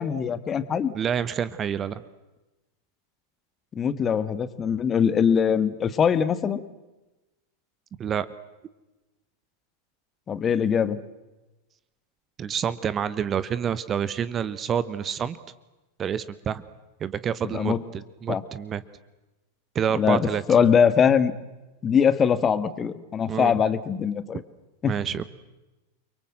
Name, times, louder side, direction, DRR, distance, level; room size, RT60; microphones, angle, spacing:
voice 1, 0.0-0.9 3.8-6.6 10.3-11.0 17.4-17.8 18.3-18.4 19.9-21.4 21.8-24.4 24.8-25.0, left 7 dB, 25° left, 14 dB, 1.6 m, -22 dB
voice 2, 0.9-2.0 8.0-8.3 12.4-15.4 16.0-16.6 17.0-18.8 19.7-20.4 23.3-23.5 24.9-25.2, right 8 dB, 25° right, 16 dB, 1.1 m, -28 dB
30.0 x 23.5 x 7.7 m, 1.1 s
figure-of-eight pair, 90°, 0 cm